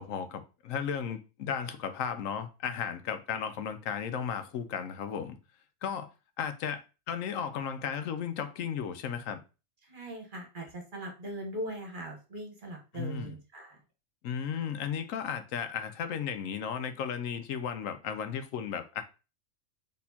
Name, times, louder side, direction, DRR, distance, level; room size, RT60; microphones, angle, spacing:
voice 1, 0.0-5.4 5.8-6.1 6.4-9.4 12.9-13.4 14.2-19.0, left 7 dB, 85° left, 1.0 m, -35 dB
voice 2, 9.8-13.8, right 1 dB, 40° right, 1.3 m, -40 dB
4.2 x 3.6 x 2.7 m
omnidirectional pair, 1.3 m